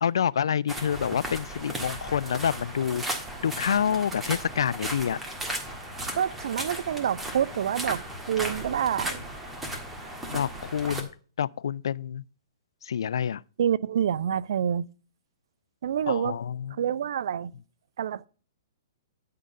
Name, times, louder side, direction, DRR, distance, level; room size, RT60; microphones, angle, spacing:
voice 1, 0.0-3.0 3.4-5.2 10.3-11.1 11.4-12.2 12.8-13.4 16.1-16.7, left 8 dB, 80° left, 0.3 m, -27 dB
sound 1, 0.7-11.0, right 1 dB, 10° right, 1.6 m, -36 dB
voice 2, 6.2-9.2 13.6-14.9 15.8-16.3 16.8-17.5 18.0-18.3, right 9 dB, 70° right, 0.5 m, -27 dB
10.5 x 3.8 x 6.5 m
hypercardioid pair, 135°, 2 cm